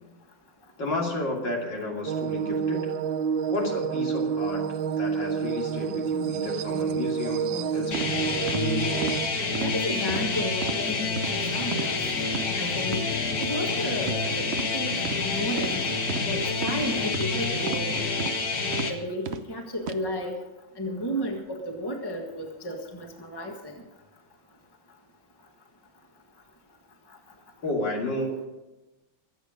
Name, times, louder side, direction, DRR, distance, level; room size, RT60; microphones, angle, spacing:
voice 1, 0.8-2.9 3.5-4.7 5.0-8.2 27.6-28.5, left 2 dB, 65° left, -1 dB, 3.4 m, -32 dB
sound 1, 2.1-9.3, right 7 dB, 85° right, 1.5 m, -28 dB
sound 2, 7.9-18.9, left 3 dB, 50° left, 2.0 m, -28 dB
sound 3, 7.9-8.1 8.5-8.6 9.0-9.2 9.5-9.7 10.1-10.3 10.6-10.8 11.2-11.3 11.7-11.9 12.3-12.5 12.9-13.0 13.4-13.6 14.0-14.2 14.5-14.7 15.0-15.2 15.6-15.7 16.1-16.3 16.6-16.8 17.1-17.3 17.7-17.9 18.2-18.4 18.7-18.9 19.3-19.4 19.8-20.0, right 7 dB, 60° right, 0.7 m, -33 dB
voice 2, 9.6-12.0 12.6-13.0 13.4-14.4 14.7-14.9 15.2-15.8 16.3-18.0 18.9-20.4 20.8-23.7, equal, 15° left, 2 dB, 1.6 m, -32 dB
23.0 x 8.1 x 5.2 m, 1.0 s
omnidirectional pair, 2.1 m